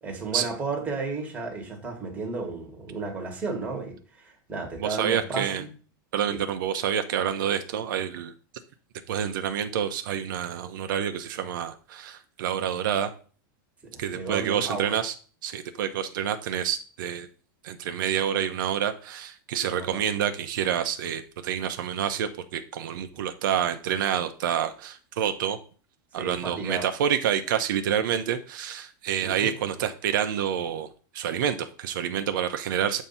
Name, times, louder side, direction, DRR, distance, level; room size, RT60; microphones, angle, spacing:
voice 1, 0.0-5.7 13.8-14.9 19.7-20.0 26.2-26.8 29.2-29.5, right 3 dB, 15° right, 1 dB, 1.5 m, -33 dB
voice 2, 4.8-5.6 6.1-8.3 9.1-13.1 14.0-15.1 15.4-17.3 17.6-25.6 26.1-33.0, right 9 dB, 75° right, 8 dB, 0.6 m, -28 dB
7.3 x 2.7 x 5.5 m, 0.40 s
supercardioid pair, 155°, 11 cm